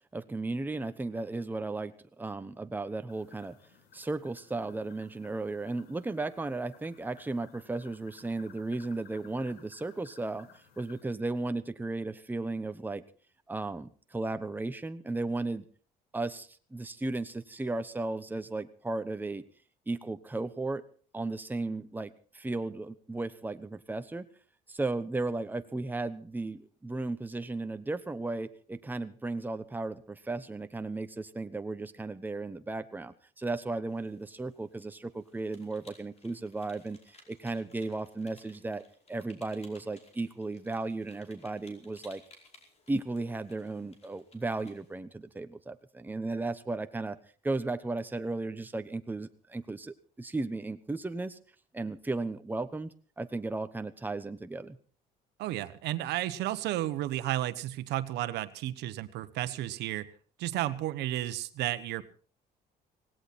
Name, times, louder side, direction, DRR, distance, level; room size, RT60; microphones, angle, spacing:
voice 1, 0.1-3.6 3.9-10.5 10.8-13.0 13.5-15.7 16.1-19.4 19.9-20.8 21.1-24.3 24.7-38.8 39.1-42.2 42.9-47.2 47.4-51.4 51.7-54.8, right 2 dB, 10° right, 9 dB, 1.1 m, -35 dB
sound 1, 3.1-11.0, left 7 dB, 70° left, 4.1 m, -58 dB
sound 2, 33.9-45.0, left 3 dB, 40° left, 5.0 m, -60 dB
voice 2, 55.4-60.1 60.4-62.0, right 14 dB, 85° right, 12 dB, 1.2 m, -32 dB
18.5 x 17.0 x 4.3 m, 0.42 s
cardioid pair, 110°, 17 cm